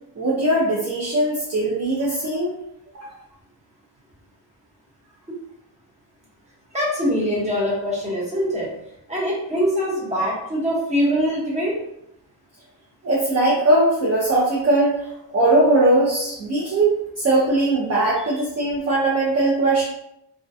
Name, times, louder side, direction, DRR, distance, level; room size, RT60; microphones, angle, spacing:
voice 1, 0.2-2.5 2.9-3.1 13.0-15.1 15.3-19.8, right 2 dB, 40° right, -5 dB, 0.5 m, -20 dB
voice 2, 6.7-8.7 9.1-11.7 18.2-18.3, equal, 15° right, -6 dB, 0.8 m, -23 dB
2.4 x 2.1 x 2.5 m, 0.80 s
wide cardioid pair, 145°, 41 cm